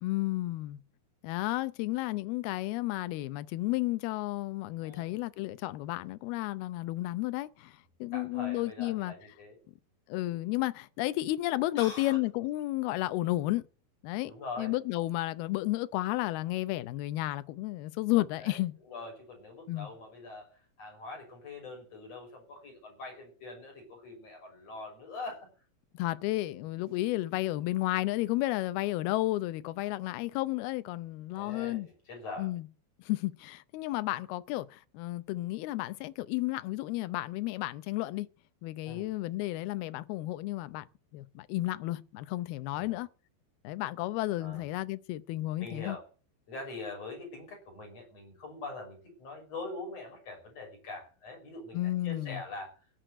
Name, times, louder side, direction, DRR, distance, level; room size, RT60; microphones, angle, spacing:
voice 1, 0.0-0.8 1.2-9.1 10.1-13.6 14.0-18.7 19.7-19.9 25.9-31.9 32.4-32.7 33.1-38.3 38.6-40.9 41.1-43.1 43.6-46.0 51.7-52.4, left 17 dB, 75° left, 2.5 m, -32 dB
voice 2, 4.8-5.2 8.1-9.6 11.8-12.2 14.3-14.8 18.4-18.6 18.9-25.5 31.3-32.5 38.8-39.1 42.7-43.0 44.4-44.6 45.6-46.0 46.5-52.7, left 3 dB, 35° left, 7.0 m, -43 dB
16.5 x 6.4 x 9.0 m
omnidirectional pair, 4.9 m